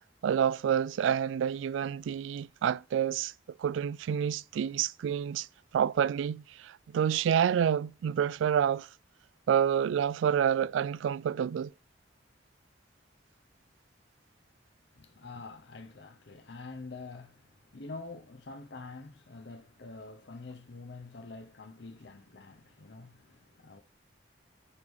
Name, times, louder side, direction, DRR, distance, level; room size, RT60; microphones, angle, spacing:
voice 1, 0.2-5.5 5.7-8.9 9.5-11.7, right 8 dB, 90° right, 0.3 m, -28 dB
voice 2, 14.9-23.8, left 3 dB, 65° left, 0.8 m, -46 dB
9.7 x 3.6 x 6.2 m
head